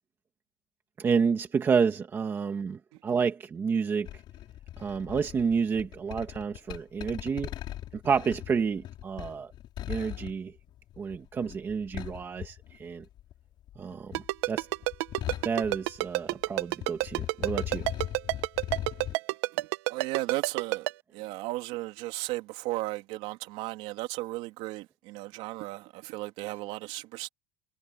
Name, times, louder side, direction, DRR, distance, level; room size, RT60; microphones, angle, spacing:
voice 1, 1.0-4.1 4.8-7.5 7.9-9.5 9.9-10.5 11.0-13.0 13.7-14.2 14.5-14.7 15.4-17.9, right 6 dB, 15° right, 1.4 m, -29 dB
sound 1, 4.1-13.3 13.6-16.5 16.7-19.1, left 13 dB, 30° left, 5.7 m, -39 dB
Ringtone, 14.1-20.9, right 20 dB, 65° right, 0.9 m, -27 dB
voice 2, 19.5-27.3, right 19 dB, 45° right, 3.2 m, -35 dB
cardioid pair, 180°, 15 cm